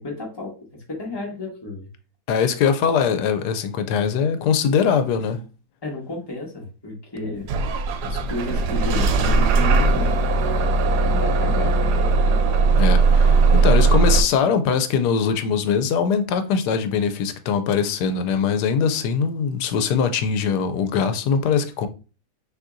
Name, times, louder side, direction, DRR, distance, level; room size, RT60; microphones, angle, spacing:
voice 1, 0.0-1.9 5.8-7.5 8.0-10.1 11.0-11.8, left 2 dB, 15° left, 1.2 m, -32 dB
voice 2, 2.3-5.4 12.8-21.9, left 6 dB, 85° left, 1.2 m, -22 dB
Bus / Engine starting, 7.5-14.2, right 3 dB, 85° right, 1.2 m, -18 dB
6.2 x 2.9 x 2.5 m
omnidirectional pair, 1.7 m